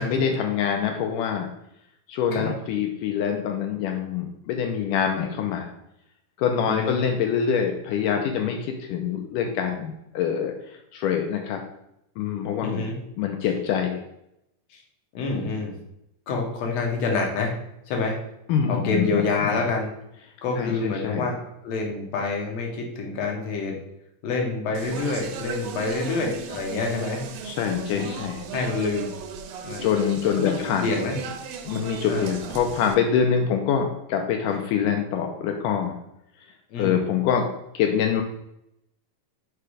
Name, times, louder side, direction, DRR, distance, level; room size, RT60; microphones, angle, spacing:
voice 1, 0.0-1.5 2.1-5.7 6.4-11.6 12.2-12.8 13.2-14.0 18.5-19.7 20.6-21.3 27.4-28.4 29.8-30.8 31.6-36.0 36.8-37.5 37.7-38.2, left 7 dB, 80° left, 3 dB, 2.2 m, -25 dB
voice 2, 6.7-7.0 12.6-12.9 14.7-14.8 15.1-15.7 16.3-17.5 17.9-18.2 18.7-19.9 20.4-23.8 24.2-27.3 27.9-28.2 28.5-29.1 29.6-29.9 30.4-31.2 32.1-32.3 36.7-37.0, left 3 dB, 60° left, 1 dB, 2.2 m, -27 dB
Speech, 24.7-32.9, right 7 dB, 90° right, 2.5 m, -36 dB
6.0 x 4.8 x 4.9 m, 0.81 s
omnidirectional pair, 3.9 m